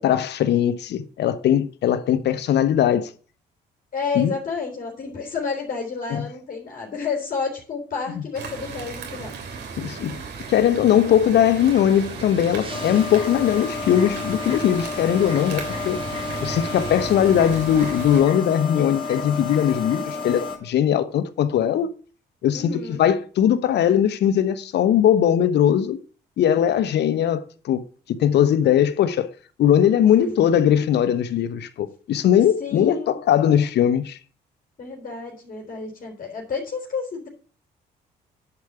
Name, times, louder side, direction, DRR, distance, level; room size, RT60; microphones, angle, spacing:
voice 1, 0.0-3.1 4.1-4.3 6.1-6.2 9.8-10.2 10.5-16.0 16.4-21.9 22.4-26.0 26.4-27.8 28.1-29.3 29.6-34.2, left 9 dB, 70° left, 1.0 m, -20 dB
voice 2, 3.9-9.3 22.5-23.0 30.0-30.4 32.6-33.2 34.8-37.3, left 5 dB, 50° left, 3.8 m, -30 dB
sound 1, 8.3-18.2, right 5 dB, 70° right, 2.9 m, -36 dB
sound 2, 11.6-17.0, right 3 dB, 30° right, 2.3 m, -42 dB
sound 3, 12.7-20.6, left 4 dB, 30° left, 2.8 m, -31 dB
10.5 x 4.9 x 6.9 m
cardioid pair, 80°, 18 cm